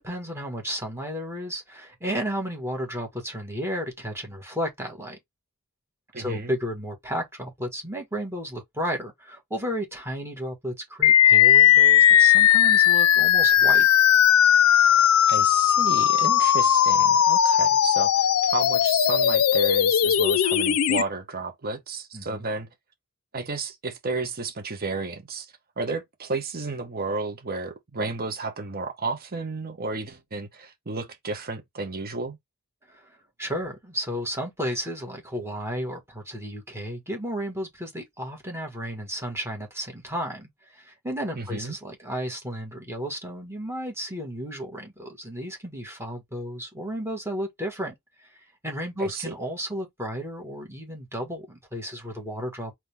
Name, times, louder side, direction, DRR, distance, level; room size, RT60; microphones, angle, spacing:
voice 1, 0.0-5.2 6.1-13.9 22.1-22.5 32.9-52.7, equal, 10° right, 1.7 m, -33 dB
voice 2, 6.1-6.5 15.3-22.7 23.3-32.4 41.3-41.8 49.0-49.3, right 3 dB, 45° right, 1.1 m, -32 dB
sound 1, 11.0-21.0, left 10 dB, 80° left, 0.4 m, -18 dB
4.0 x 3.0 x 3.4 m
head